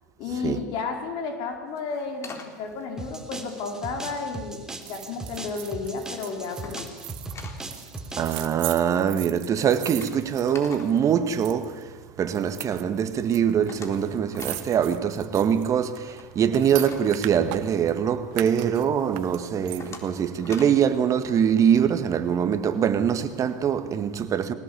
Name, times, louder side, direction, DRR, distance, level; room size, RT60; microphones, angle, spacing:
voice 1, 0.2-4.6 4.9-6.8, left 4 dB, 55° left, 4.4 m, -32 dB
sound 1, 1.7-4.2 4.6-5.2 5.6-5.9 6.2-7.7 7.9-8.1 8.4-12.1 12.5-12.6 12.9-13.0 13.2-18.2 18.7-18.8 19.3-20.9, left 4 dB, 30° left, 3.8 m, -45 dB
sound 2, 3.0-8.5, right 2 dB, 5° right, 3.3 m, -38 dB
sound 3, 4.8-11.0 11.3-11.8 12.3-13.4 13.6-13.7 13.9-17.9 18.3-20.1 20.5-20.6, right 19 dB, 60° right, 1.4 m, -39 dB
voice 2, 8.2-24.5, right 8 dB, 35° right, 1.9 m, -23 dB
21.5 x 18.5 x 8.7 m
hypercardioid pair, 95°, 9 cm